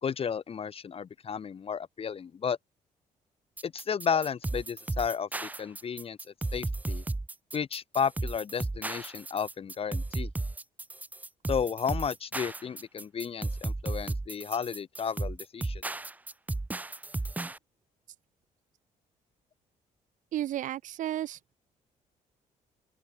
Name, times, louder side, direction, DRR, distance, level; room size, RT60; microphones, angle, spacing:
voice 1, 0.0-2.6 3.6-6.2 6.5-7.0 7.5-10.3 11.5-15.8, left 7 dB, 45° left, 4.1 m, -33 dB
sound 1, 3.6-17.6, right 2 dB, 10° right, 0.7 m, -34 dB
voice 2, 20.3-21.6, right 12 dB, 65° right, 1.0 m, -33 dB
open air
cardioid pair, 105°, 14 cm